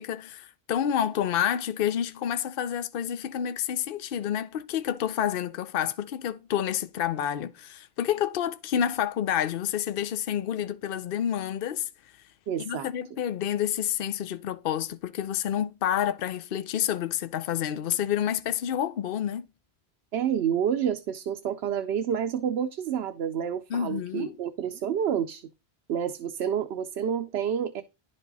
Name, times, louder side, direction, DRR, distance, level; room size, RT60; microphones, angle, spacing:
voice 1, 0.0-11.9 12.6-19.5 23.7-24.4, left 10 dB, 65° left, 0.8 m, -29 dB
voice 2, 12.5-12.9 20.1-25.5 25.9-27.8, right 8 dB, 90° right, 0.9 m, -29 dB
10.5 x 5.2 x 4.0 m
omnidirectional pair, 1.0 m